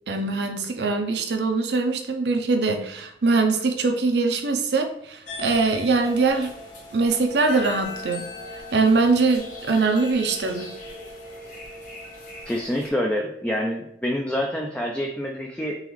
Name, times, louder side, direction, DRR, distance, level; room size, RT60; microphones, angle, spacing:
voice 1, 0.1-6.5 6.9-8.3 8.5-10.7, right 3 dB, 65° right, 5 dB, 0.6 m, -22 dB
sound 1, 5.3-12.9, left 2 dB, 45° left, 1.3 m, -38 dB
voice 2, 12.5-15.8, equal, 5° left, 0 dB, 0.4 m, -27 dB
4.0 x 3.9 x 3.1 m, 0.78 s
head